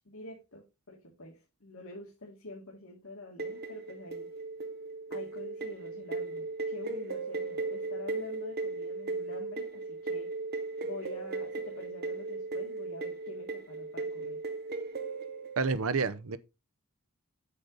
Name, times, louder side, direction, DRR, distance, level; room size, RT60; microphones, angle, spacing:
voice 1, 0.0-4.3 5.1-10.3 10.8-14.4, left 2 dB, 70° left, 2.4 m, -47 dB
sound 1, 3.4-15.7, right 3 dB, 45° right, 1.1 m, -37 dB
voice 2, 15.6-16.4, right 4 dB, 75° right, 0.8 m, -29 dB
8.4 x 6.7 x 3.9 m
head